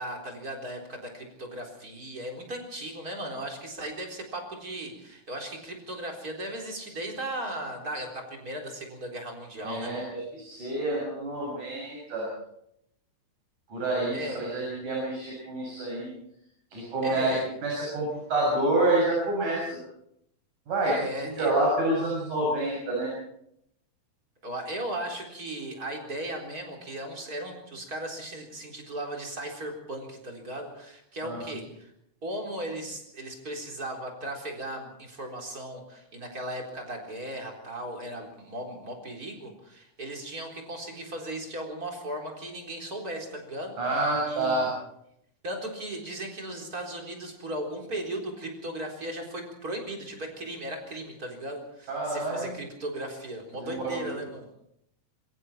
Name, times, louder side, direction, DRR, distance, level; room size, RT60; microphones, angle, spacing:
voice 1, 0.0-10.1 14.1-14.4 17.0-17.5 20.9-21.5 24.4-31.9 32.2-44.7 45.4-54.5, right 1 dB, 30° right, 1 dB, 4.2 m, -37 dB
voice 2, 9.6-12.3 13.7-16.1 16.7-17.3 17.6-19.8 20.7-23.1 31.2-31.4 43.8-44.7 51.9-52.5 53.5-54.1, right 2 dB, 75° right, -3 dB, 8.4 m, -28 dB
26.5 x 23.0 x 4.4 m, 0.75 s
omnidirectional pair, 3.5 m